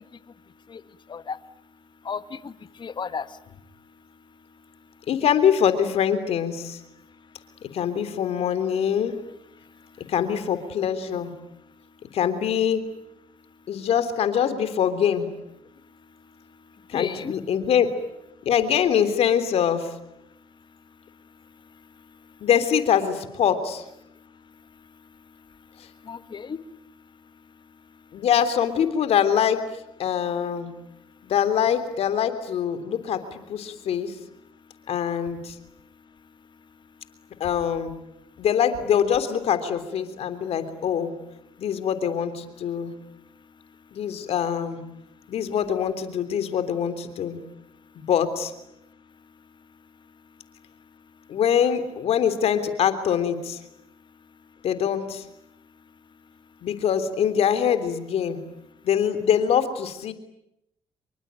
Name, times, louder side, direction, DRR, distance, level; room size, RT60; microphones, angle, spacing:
voice 1, 2.1-2.5 2.8-3.3 16.9-17.4 26.1-26.6, left 6 dB, 45° left, 12 dB, 1.8 m, -32 dB
voice 2, 5.1-6.8 7.7-9.2 10.1-11.3 12.1-12.8 13.7-15.3 16.9-17.9 18.4-19.9 22.4-23.8 25.8-25.9 28.1-29.6 30.0-30.7 31.3-34.1 34.9-35.5 37.4-37.9 38.4-41.1 41.6-42.9 43.9-44.8 45.3-47.4 47.9-48.5 51.3-53.6 54.6-55.2 56.6-58.4 58.8-60.1, left 8 dB, 70° left, 11 dB, 3.3 m, -23 dB
27.0 x 24.0 x 9.1 m, 0.80 s
supercardioid pair, 65°, 11 cm